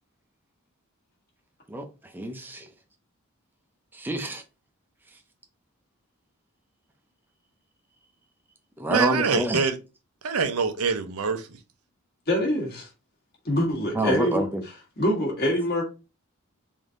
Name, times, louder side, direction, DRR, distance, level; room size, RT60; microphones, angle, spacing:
voice 1, 2.1-2.7 3.9-4.4 8.8-9.7 13.9-14.6, right 1 dB, 10° right, 0.5 m, -28 dB
voice 2, 8.9-9.8 10.2-11.5, right 5 dB, 80° right, 0.6 m, -24 dB
voice 3, 12.3-12.9 13.4-14.5 15.0-15.8, left 1 dB, 45° left, 1.4 m, -24 dB
3.6 x 2.7 x 3.7 m
head